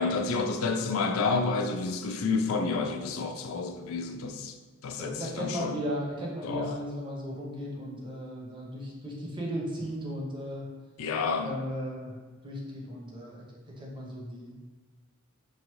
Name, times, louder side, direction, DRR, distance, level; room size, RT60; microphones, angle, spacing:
voice 1, 0.0-4.5 4.8-5.7 6.4-6.7 11.0-11.5, left 4 dB, 70° left, 5 dB, 0.4 m, -29 dB
voice 2, 5.0-10.7 11.4-12.2 12.4-13.4 13.8-14.6, equal, 25° right, -3 dB, 0.7 m, -36 dB
4.7 x 2.6 x 3.0 m, 1.3 s
head